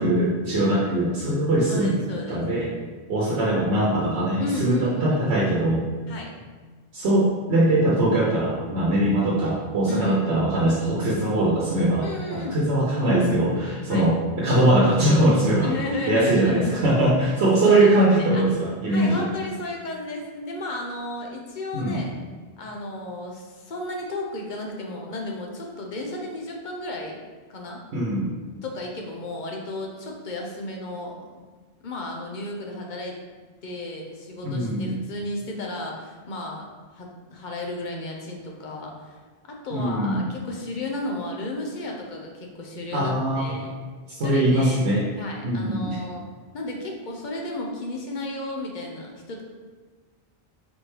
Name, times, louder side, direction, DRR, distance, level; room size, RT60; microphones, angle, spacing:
voice 1, 0.0-1.9 2.3-2.7 3.1-5.8 6.9-15.8 16.1-19.3 21.7-22.0 27.9-28.3 34.4-35.0 39.7-40.2 42.9-43.5 44.1-45.0 45.4-46.0, right 1 dB, 90° right, -4 dB, 1.0 m, -21 dB
voice 2, 1.7-2.4 4.4-5.3 6.1-6.3 9.9-10.2 12.0-12.6 13.9-14.0 15.6-16.8 17.6-17.9 18.3-18.4 18.9-22.1 22.6-27.2 27.5-27.8 28.6-31.2 31.8-33.2 33.6-36.7 36.9-39.2 39.4-43.7 44.2-44.8 45.2-46.2 46.5-49.4, left 2 dB, 55° left, 0 dB, 0.7 m, -33 dB
4.2 x 3.2 x 3.1 m, 1.4 s
omnidirectional pair, 1.1 m